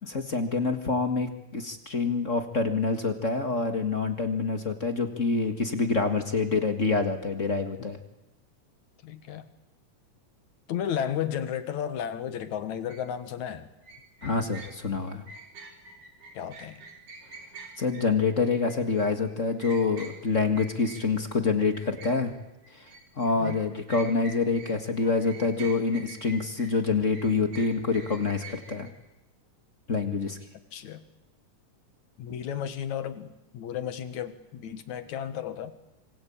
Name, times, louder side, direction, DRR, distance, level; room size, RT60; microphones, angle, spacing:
voice 1, 0.0-8.0 14.2-15.2 17.8-22.3 22.7-22.9 23.2-28.9 29.9-30.4, left 4 dB, 30° left, 6 dB, 1.5 m, -26 dB
voice 2, 9.0-9.5 10.7-13.7 16.3-16.8 23.3-23.6 30.7-31.0 32.2-35.7, left 9 dB, 70° left, 10 dB, 2.9 m, -33 dB
sound 1, 12.9-13.0 13.8-21.4 21.7-24.8 25.0-28.9, right 3 dB, 70° right, 5.3 m, -46 dB
26.5 x 25.5 x 8.7 m, 0.92 s
omnidirectional pair, 3.5 m